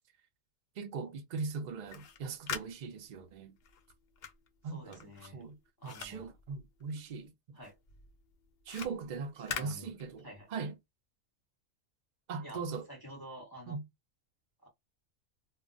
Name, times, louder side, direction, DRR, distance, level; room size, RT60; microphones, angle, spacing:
voice 1, 0.8-3.6 4.6-5.6 5.8-7.6 8.7-10.7 12.3-12.9 13.7-13.8, right 5 dB, 60° right, 0.4 m, -40 dB
sound 1, 1.7-7.3 7.6-10.5, left 7 dB, 60° left, 0.7 m, -45 dB
voice 2, 4.6-5.5 5.8-6.3 7.5-7.7 9.5-9.9 10.2-10.5 12.4-13.8 14.6-14.7, equal, 25° left, 0.6 m, -49 dB
2.2 x 2.1 x 3.7 m
omnidirectional pair, 1.4 m